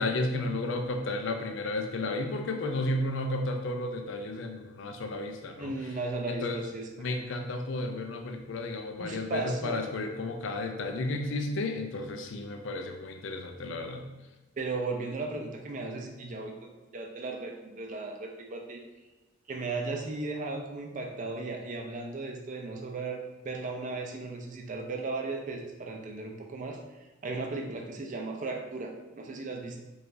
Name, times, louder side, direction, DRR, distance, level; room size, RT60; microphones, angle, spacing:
voice 1, 0.0-5.7 6.3-6.6 7.0-14.1, left 2 dB, 65° left, 5 dB, 0.4 m, -33 dB
voice 2, 5.6-7.2 9.0-9.8 14.6-18.8 19.5-26.8 27.2-29.8, right 3 dB, 40° right, 2 dB, 0.4 m, -36 dB
4.6 x 2.4 x 2.6 m, 1.1 s
head